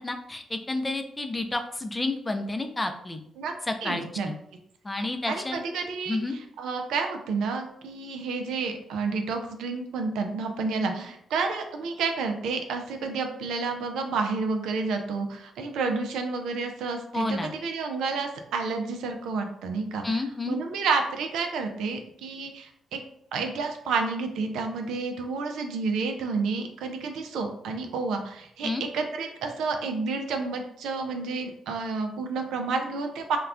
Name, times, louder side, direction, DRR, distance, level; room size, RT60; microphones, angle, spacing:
voice 1, 0.0-3.2 3.7-4.4 4.8-5.6 6.1-6.4 17.1-17.5 20.0-20.6 28.6-28.8, left 2 dB, 25° left, 6 dB, 0.4 m, -30 dB
voice 2, 3.8-4.3 5.3-6.2 6.6-23.0 23.3-33.4, right 4 dB, 75° right, 5 dB, 0.3 m, -30 dB
2.3 x 2.2 x 3.3 m, 0.71 s
hypercardioid pair, 45°, 0 cm